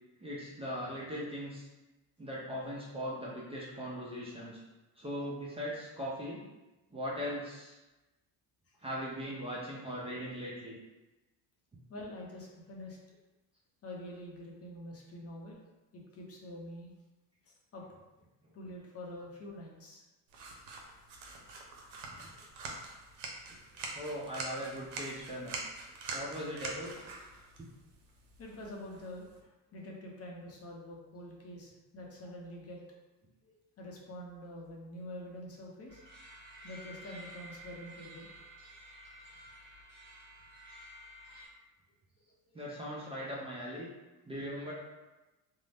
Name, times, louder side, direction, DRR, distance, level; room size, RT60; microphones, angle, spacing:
voice 1, 0.2-1.7 2.2-4.6 5.0-6.4 6.9-7.8 8.8-10.7 22.1-22.3 23.5-23.6 23.9-25.6 26.1-27.1 41.2-41.4 42.5-43.9 44.3-44.7, equal, 15° right, -6 dB, 0.5 m, -39 dB
voice 2, 11.9-13.0 13.8-15.6 15.9-16.9 17.5-17.8 18.5-20.0 22.3-22.4 23.7-23.8 28.4-32.8 33.4-36.0 36.6-38.5 42.5-42.6, left 1 dB, 40° left, -2 dB, 0.6 m, -46 dB
sound 1, 20.3-29.4, right 3 dB, 90° right, 0.6 m, -45 dB
sound 2, 35.9-41.5, right 1 dB, 55° right, 1.4 m, -52 dB
2.5 x 2.1 x 3.3 m, 1.1 s
cardioid pair, 110°, 39 cm